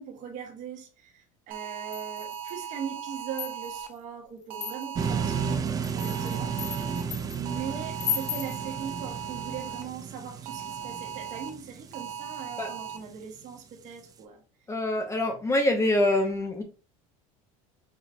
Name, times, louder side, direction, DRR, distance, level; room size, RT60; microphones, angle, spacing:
voice 1, 0.0-6.8 7.3-14.4, right 7 dB, 45° right, 1.1 m, -40 dB
sound 1, 1.5-3.9 4.5-5.6 6.0-7.0 7.5-9.8 10.5-11.5 11.9-13.0, right 8 dB, 70° right, 0.6 m, -38 dB
sound 2, 1.9-2.7 3.2-3.9 4.5-5.1 5.7-7.4 8.0-8.6, left 9 dB, 40° left, 1.1 m, -35 dB
sound 3, 5.0-13.0, right 6 dB, 20° right, 0.4 m, -33 dB
voice 2, 14.7-16.6, left 1 dB, 15° left, 0.7 m, -25 dB
5.0 x 3.1 x 2.5 m
supercardioid pair, 125°, 17 cm